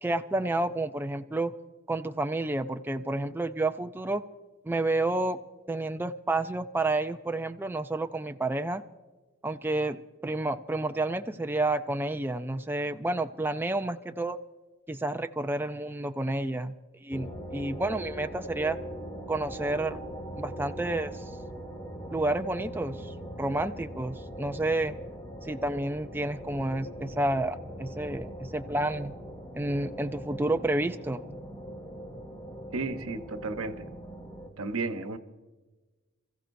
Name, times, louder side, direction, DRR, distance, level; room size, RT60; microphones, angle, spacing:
voice 1, 0.0-1.5 1.9-4.2 4.7-5.4 5.7-8.8 9.4-14.4 14.9-16.8 17.0-18.8 19.3-20.0 20.4-21.2 22.1-25.0 25.4-29.1 29.5-31.2, right 2 dB, 10° right, 8 dB, 0.4 m, -30 dB
sound 1, 17.1-34.5, equal, 15° left, 1.8 m, -41 dB
voice 2, 32.7-33.9 34.6-35.2, right 3 dB, 90° right, 8 dB, 1.0 m, -33 dB
27.5 x 15.0 x 2.6 m, 1.2 s
head